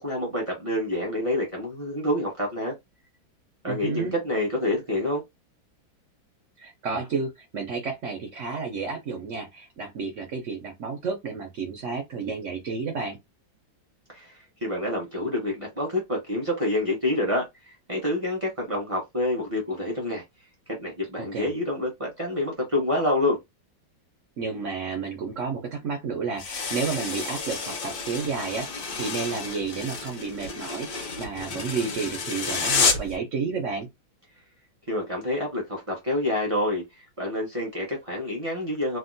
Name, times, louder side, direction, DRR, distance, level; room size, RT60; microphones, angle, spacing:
voice 1, 0.0-2.7 3.6-5.2 14.1-20.2 20.8-23.4 34.9-39.0, left 1 dB, 35° right, 0.5 m, -27 dB
voice 2, 3.7-4.1 6.6-13.2 21.2-21.5 24.4-33.9, right 5 dB, 85° right, 0.6 m, -31 dB
sound 1, 26.4-33.2, left 4 dB, 65° left, 1.4 m, -30 dB
3.5 x 2.1 x 2.6 m
omnidirectional pair, 2.1 m